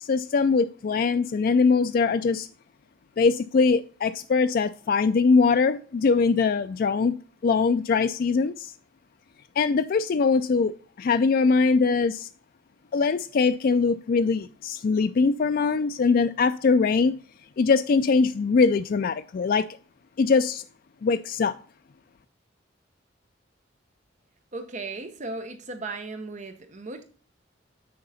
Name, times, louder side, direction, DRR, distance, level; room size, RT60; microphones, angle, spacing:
voice 1, 0.0-2.5 3.2-7.1 7.4-8.7 9.6-12.3 12.9-17.1 17.6-19.6 20.2-20.6 21.0-21.5, left 4 dB, 50° left, 0.3 m, -22 dB
voice 2, 24.5-27.0, right 3 dB, 40° right, 0.8 m, -36 dB
7.8 x 6.5 x 4.1 m
head